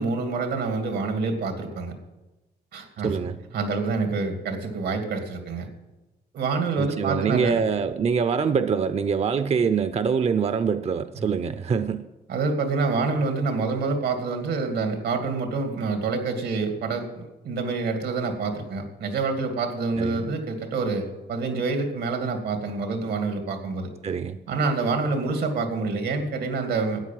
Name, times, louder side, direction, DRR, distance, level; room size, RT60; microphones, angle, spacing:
voice 1, 0.0-1.9 2.7-5.7 6.3-7.6 12.3-23.9 24.5-27.0, right 4 dB, 90° right, 5 dB, 2.4 m, -27 dB
voice 2, 3.0-3.4 6.8-12.0 20.0-20.2 24.0-24.4, right 6 dB, 40° right, 12 dB, 0.6 m, -24 dB
13.0 x 9.2 x 7.6 m, 1.1 s
cardioid pair, 110°, 17 cm